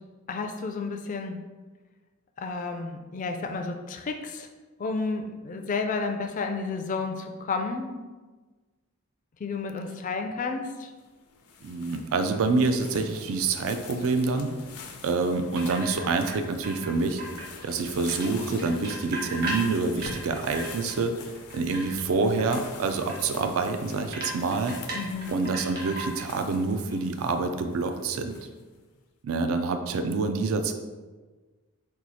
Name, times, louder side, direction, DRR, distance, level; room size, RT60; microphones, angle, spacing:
voice 1, 0.3-1.4 2.4-4.5 4.8-7.9 9.4-10.9 24.9-25.3, left 4 dB, 35° left, 5 dB, 0.3 m, -31 dB
sound 1, 11.0-28.8, left 4 dB, 90° left, 0.5 m, -45 dB
voice 2, 11.6-14.5 15.0-17.2 17.6-21.1 21.5-24.8 25.3-28.4 29.2-30.7, right 3 dB, 65° right, 7 dB, 0.4 m, -27 dB
sound 2, 15.5-16.3 16.6-17.7 18.1-21.0 21.3-22.1 22.4-22.7 23.1-23.2 23.4-23.5 24.1-26.4 26.6-26.9, right 2 dB, 45° right, 1.1 m, -36 dB
4.5 x 2.3 x 4.1 m, 1.3 s
head